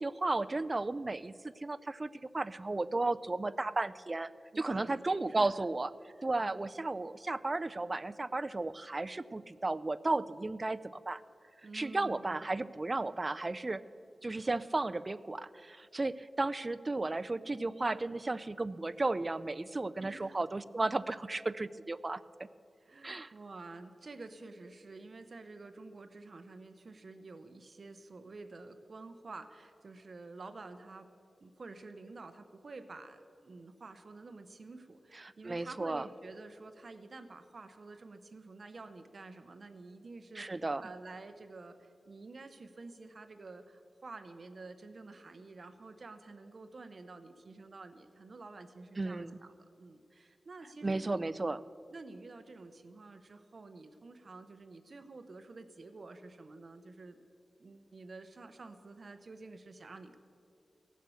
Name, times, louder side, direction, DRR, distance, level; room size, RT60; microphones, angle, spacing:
voice 1, 0.0-4.3 4.6-5.9 6.2-11.2 11.7-13.8 14.2-22.2 23.0-23.3 35.4-36.1 40.4-40.8 49.0-49.4 50.8-51.6, right 2 dB, 30° right, 15 dB, 0.4 m, -34 dB
voice 2, 4.5-5.5 6.1-6.7 11.6-12.6 20.0-20.4 22.8-31.1 31.4-51.2 51.9-57.3 57.6-60.2, right 3 dB, 55° right, 9 dB, 0.9 m, -50 dB
17.0 x 7.4 x 7.0 m, 2.5 s
wide cardioid pair, 110°, 0 cm